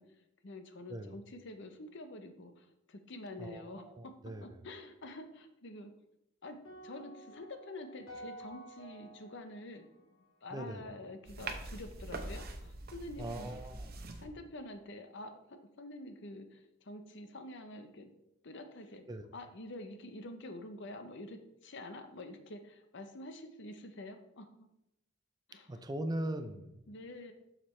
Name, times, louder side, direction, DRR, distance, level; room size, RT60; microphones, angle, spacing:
voice 1, 0.0-4.1 4.4-5.9 6.4-6.6 6.8-18.1 18.4-19.0 19.3-24.7 25.5-25.8 26.9-27.3, left 1 dB, 60° left, 7 dB, 0.8 m, -47 dB
voice 2, 3.4-4.5 10.5-10.8 13.2-14.1 19.1-19.3 25.7-26.9, right 1 dB, 20° right, 8 dB, 0.5 m, -40 dB
sound 1, 6.6-10.9, right 1 dB, 75° left, 2.1 m, -52 dB
sound 2, 11.3-14.3, right 2 dB, 50° right, 0.8 m, -43 dB
7.3 x 6.6 x 3.2 m, 0.85 s
head